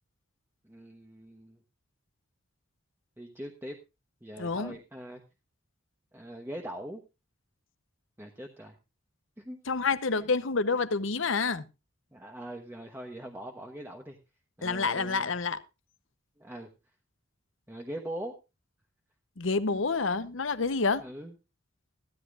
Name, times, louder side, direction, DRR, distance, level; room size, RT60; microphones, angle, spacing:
voice 1, 0.6-1.6 3.2-3.8 4.2-5.2 6.1-7.0 8.2-8.7 9.4-9.6 10.1-10.2 12.1-14.2 14.6-15.3 16.4-16.7 17.7-18.4 21.0-21.3, right 1 dB, 10° right, 1.1 m, -42 dB
voice 2, 4.4-4.8 9.7-11.6 14.6-15.6 19.4-21.0, left 4 dB, 70° left, 0.9 m, -28 dB
15.5 x 13.0 x 2.5 m
head